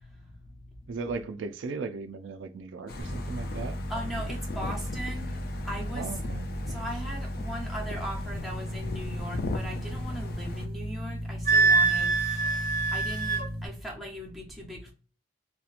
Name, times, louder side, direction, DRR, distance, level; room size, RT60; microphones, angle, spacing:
voice 1, 0.0-1.0 3.9-6.2 6.7-14.9, equal, ahead, 0.7 m, -39 dB
voice 2, 0.9-3.8 5.9-6.8, right 4 dB, 85° right, 0.4 m, -37 dB
sound 1, 2.9-10.7, left 3 dB, 50° left, 0.3 m, -39 dB
sound 2, 3.0-13.7, equal, 30° left, 0.8 m, -36 dB
Wind instrument woodwind instrument, 11.5-13.5, right 4 dB, 40° right, 0.6 m, -24 dB
2.8 x 2.1 x 2.4 m
head